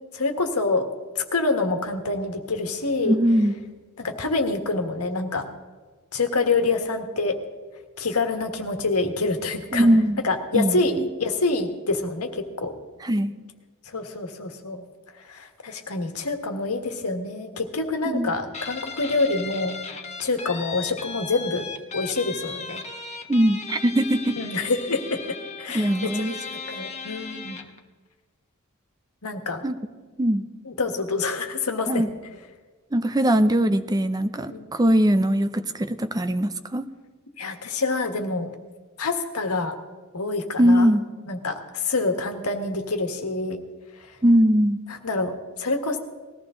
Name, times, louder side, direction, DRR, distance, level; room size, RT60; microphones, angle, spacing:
voice 1, 0.1-0.9 1.2-3.1 4.0-5.5 6.1-7.4 8.0-9.9 10.2-12.7 13.9-14.8 15.3-19.8 20.2-21.7 21.9-22.8 24.4-27.6 29.2-29.6 30.7-32.0 34.5-34.7 37.4-38.5 39.0-39.8 40.1-40.9 41.2-43.6 45.0-46.0, left 3 dB, 85° left, 6 dB, 1.6 m, -26 dB
voice 2, 3.0-3.5 9.7-10.2 10.5-11.1 13.0-13.3 18.0-18.3 23.3-24.4 25.7-26.4 29.6-29.8 30.2-30.4 31.9-32.1 32.9-36.9 40.6-41.0 44.2-44.8, equal, 15° right, 11 dB, 0.5 m, -21 dB
Guitar, 18.5-27.8, left 5 dB, 30° left, 1.2 m, -36 dB
20.0 x 14.5 x 3.8 m, 1.4 s
head